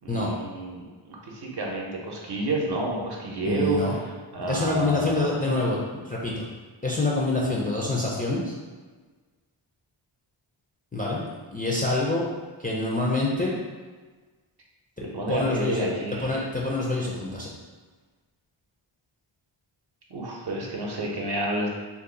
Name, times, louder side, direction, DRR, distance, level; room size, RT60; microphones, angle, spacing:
voice 1, 0.0-3.8 4.3-5.4 15.0-16.4 20.1-21.7, right 2 dB, 50° right, -2 dB, 0.7 m, -30 dB
voice 2, 3.4-4.0 4.5-6.4 6.8-8.5 10.9-11.2 11.5-12.3 12.6-13.5 15.0-15.9 16.2-17.5, left 2 dB, 20° left, -5 dB, 0.4 m, -26 dB
2.6 x 2.3 x 3.8 m, 1.4 s
wide cardioid pair, 100°, 49 cm